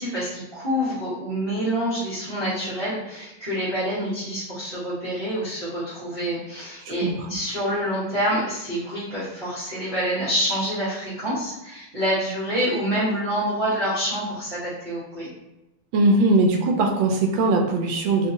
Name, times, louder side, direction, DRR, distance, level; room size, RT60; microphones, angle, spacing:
voice 1, 0.0-15.3, equal, 35° right, -13 dB, 1.2 m, -27 dB
voice 2, 6.8-7.4 15.9-18.3, right 2 dB, 80° right, 2 dB, 1.3 m, -20 dB
3.4 x 2.7 x 2.6 m, 0.94 s
omnidirectional pair, 2.2 m